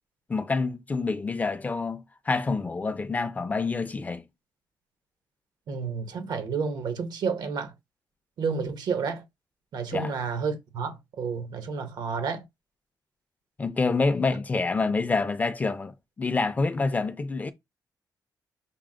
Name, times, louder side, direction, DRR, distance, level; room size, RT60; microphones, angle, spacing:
voice 1, 0.3-4.2 9.9-10.1 13.6-17.5, left 3 dB, 20° left, 0.4 m, -27 dB
voice 2, 5.7-7.7 8.4-9.2 9.7-12.4, right 5 dB, 75° right, 0.9 m, -30 dB
5.8 x 2.0 x 3.7 m
wide cardioid pair, 160°, 7 cm